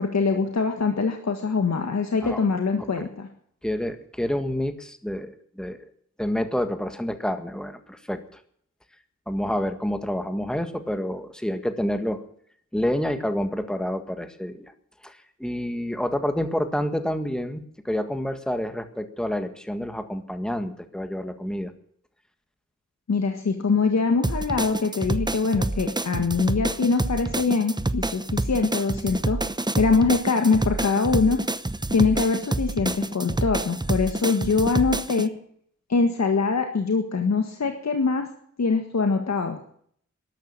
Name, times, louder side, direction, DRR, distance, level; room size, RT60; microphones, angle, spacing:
voice 1, 0.0-3.3 23.1-29.4 29.8-31.4 31.9-35.3 35.9-38.2 38.6-39.6, left 4 dB, 70° left, 5 dB, 1.7 m, -23 dB
voice 2, 3.6-5.9 6.2-8.2 9.3-12.2 12.7-14.7 15.0-21.7, left 1 dB, 5° left, 8 dB, 1.7 m, -28 dB
sound 1, 24.2-35.3, right 2 dB, 15° right, 0.8 m, -28 dB
13.0 x 11.5 x 8.8 m, 0.63 s
wide cardioid pair, 75°, 29 cm